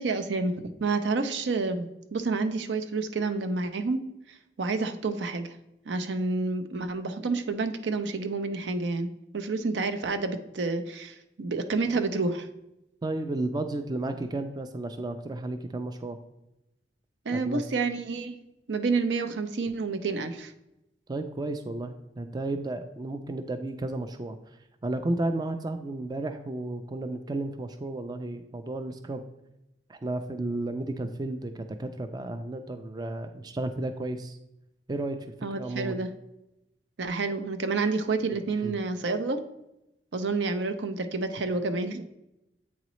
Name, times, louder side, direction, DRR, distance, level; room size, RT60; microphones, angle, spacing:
voice 1, 0.0-4.0 4.6-5.6 5.9-9.1 9.3-12.5 17.3-18.4 18.7-20.5 35.4-36.1 37.0-39.4 40.1-42.1, right 3 dB, 80° right, 7 dB, 0.6 m, -29 dB
voice 2, 13.0-16.2 17.3-17.6 21.1-24.4 24.8-29.2 29.9-34.4 34.9-35.2 35.6-36.0 38.6-38.7, right 2 dB, 25° right, 8 dB, 0.3 m, -33 dB
8.3 x 3.9 x 3.1 m, 0.90 s
head